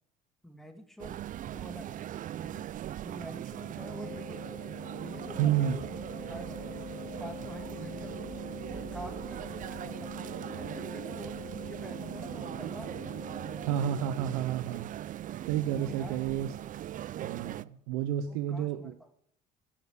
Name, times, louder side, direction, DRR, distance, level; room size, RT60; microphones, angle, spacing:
voice 1, 0.4-1.2 1.5-2.0 2.4-2.7 3.0-4.6 5.0-6.7 7.0-8.3 8.7-10.1 10.4-13.0 15.7-16.2 18.3-19.1, equal, ahead, 5 dB, 2.3 m, -47 dB
sound 1, 1.0-17.6, right 12 dB, 45° right, 0.5 m, -40 dB
Organ, 3.8-14.5, left 13 dB, 50° left, 1.2 m, -47 dB
voice 2, 5.4-5.8 13.6-14.9 15.5-16.6 17.2-19.0, right 10 dB, 90° right, 10 dB, 0.8 m, -30 dB
16.0 x 6.8 x 8.2 m, 0.66 s
supercardioid pair, 80°, 19 cm